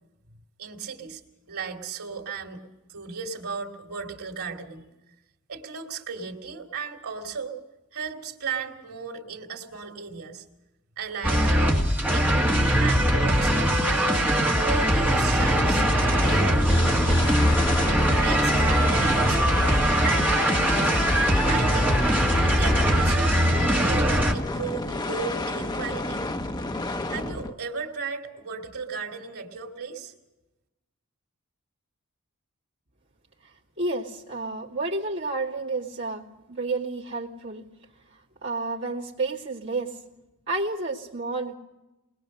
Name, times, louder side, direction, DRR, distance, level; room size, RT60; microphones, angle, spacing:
voice 1, 0.6-1.2 1.5-2.6 2.9-4.9 5.5-7.6 7.9-10.4 11.0-11.8 12.1-12.5 12.7-14.3 14.6-17.0 17.8-20.9 21.5-22.2 22.4-26.2 27.1-30.1, right 5 dB, 90° right, 3 dB, 2.6 m, -35 dB
sound 1, 11.2-24.3, equal, 10° right, 1.9 m, -21 dB
sound 2, 15.3-27.5, left 2 dB, 20° left, 0.7 m, -31 dB
voice 2, 33.8-37.6 38.4-40.0 40.5-41.5, right 3 dB, 55° right, -5 dB, 2.4 m, -30 dB
22.0 x 20.0 x 6.5 m, 1.0 s
head